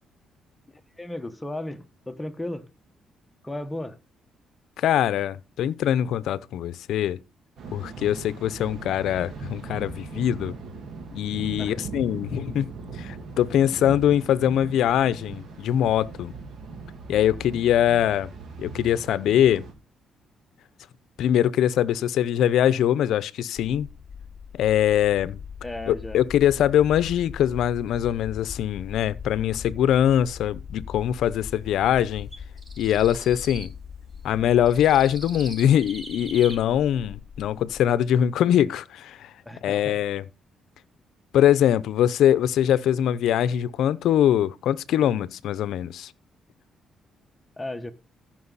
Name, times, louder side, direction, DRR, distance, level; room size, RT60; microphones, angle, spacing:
voice 1, 1.0-2.7 3.4-4.0 11.6-11.8 25.6-26.2 39.4-40.0 47.6-47.9, left 1 dB, 15° left, 1.3 m, -34 dB
voice 2, 4.8-7.2 7.7-10.5 11.1-12.7 13.0-16.3 17.1-18.3 18.6-19.6 21.2-23.9 24.5-25.4 25.9-32.3 32.8-33.7 34.2-39.3 39.6-40.2 41.3-46.1, left 10 dB, 80° left, 0.7 m, -22 dB
Thunder, 7.6-19.7, right 3 dB, 65° right, 2.8 m, -39 dB
sound 1, 23.6-38.0, left 7 dB, 35° left, 1.4 m, -41 dB
sound 2, 32.3-33.7 34.4-36.6, right 2 dB, 25° right, 4.7 m, -41 dB
14.5 x 6.1 x 4.1 m
cardioid pair, 90°, 0 cm